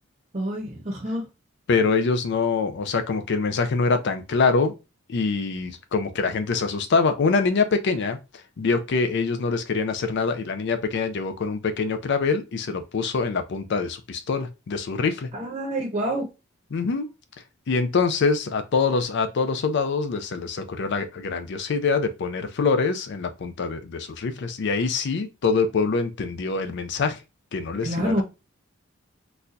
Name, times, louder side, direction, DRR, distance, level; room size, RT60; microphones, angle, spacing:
voice 1, 0.3-1.2 15.3-16.2 27.8-28.2, right 1 dB, 35° right, 0.7 m, -27 dB
voice 2, 1.7-4.7 5.1-8.2 8.6-15.3 16.7-17.1 17.7-27.2 27.5-28.2, left 4 dB, 55° left, 0.4 m, -24 dB
4.1 x 2.3 x 2.5 m
head